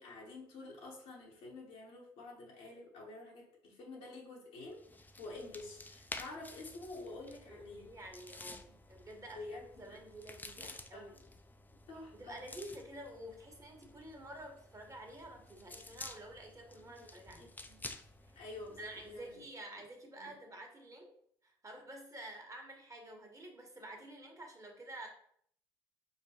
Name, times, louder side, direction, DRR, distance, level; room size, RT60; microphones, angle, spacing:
voice 1, 0.0-7.9 8.4-8.8 9.3-10.0 10.6-11.1 11.9-12.5 16.8-17.1 17.4-18.0 18.3-19.4 20.2-20.3, left 2 dB, 70° left, -3 dB, 1.0 m, -49 dB
sound 1, 4.7-19.4, left 2 dB, 15° left, 0.4 m, -52 dB
voice 2, 7.5-11.2 12.1-17.5 18.2-18.4 18.8-21.1 21.4-25.1, right 1 dB, 25° right, 2 dB, 1.2 m, -50 dB
5.0 x 2.1 x 2.9 m, 0.65 s
hypercardioid pair, 55°, 12 cm